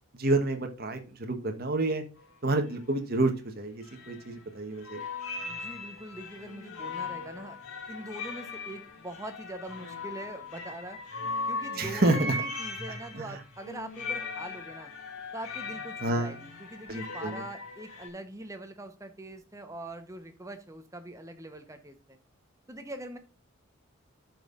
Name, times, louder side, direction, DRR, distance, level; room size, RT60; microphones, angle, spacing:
voice 1, 0.1-2.0 2.4-5.0 11.8-12.4 13.2-13.4 16.0-16.3 16.9-17.4, right 2 dB, 45° right, 5 dB, 1.2 m, -29 dB
sound 1, 2.2-2.3 2.5-2.9 3.8-4.6 4.8-18.1, left 3 dB, 85° left, 2.3 m, -39 dB
voice 2, 5.4-7.6 7.9-11.0 11.5-14.9 15.3-22.2 22.7-23.2, right 1 dB, 15° right, 7 dB, 0.9 m, -43 dB
14.0 x 5.4 x 2.5 m, 0.34 s
head